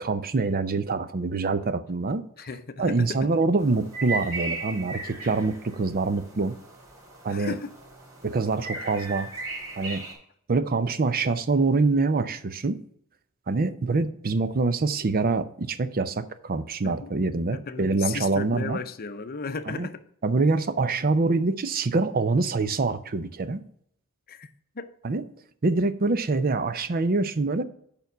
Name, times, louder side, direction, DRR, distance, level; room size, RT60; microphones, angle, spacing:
voice 1, 0.0-2.2 2.8-6.6 7.2-7.5 8.2-9.3 9.8-10.0 10.5-12.8 13.5-18.8 19.7-19.9 20.2-23.6 25.0-25.2 25.6-27.6, right 3 dB, 45° right, 0.6 m, -25 dB
voice 2, 2.4-3.3 7.3-7.8 16.8-17.2 17.5-20.0 24.3-24.9, left 4 dB, 45° left, 0.6 m, -35 dB
sound 1, 3.6-10.1, right 2 dB, 75° right, 3.4 m, -37 dB
6.9 x 5.3 x 5.9 m
head